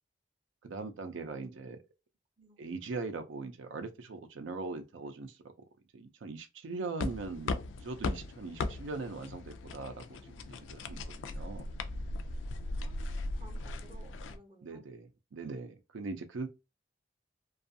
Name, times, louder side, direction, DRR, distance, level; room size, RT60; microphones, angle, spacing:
voice 1, 0.6-1.8 2.6-5.4 5.9-11.7 14.6-16.5, right 3 dB, 85° right, 0.5 m, -41 dB
voice 2, 1.4-1.8 2.4-2.6 12.7-14.9, right 2 dB, 25° right, 0.5 m, -58 dB
sound 1, 7.0-14.4, left 2 dB, 85° left, 0.4 m, -38 dB
2.5 x 2.3 x 2.6 m
head